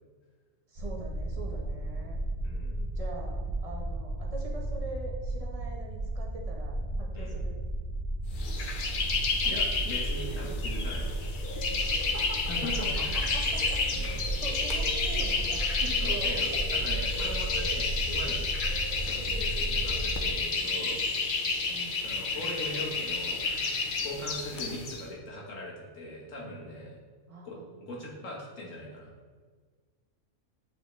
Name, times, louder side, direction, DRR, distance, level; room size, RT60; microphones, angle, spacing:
voice 1, 0.7-2.2 3.0-7.6 9.4-9.6 12.1-12.5 13.0-13.1 13.3-13.8 14.3-16.8 21.7-22.0 27.3-27.6, right 2 dB, 30° right, -1 dB, 0.9 m, -43 dB
sound 1, 0.8-20.3, right 1 dB, 70° right, 1.1 m, -34 dB
voice 2, 2.4-2.8 7.1-7.4 9.5-11.3 12.5-13.3 13.9-14.2 16.0-18.5 19.0-21.0 22.0-23.5 24.0-27.0 27.4-29.1, left 1 dB, 85° left, -3 dB, 1.7 m, -40 dB
sound 2, 8.4-25.0, left 4 dB, 50° left, 0.7 m, -31 dB
8.6 x 3.7 x 3.1 m, 1.5 s
omnidirectional pair, 1.3 m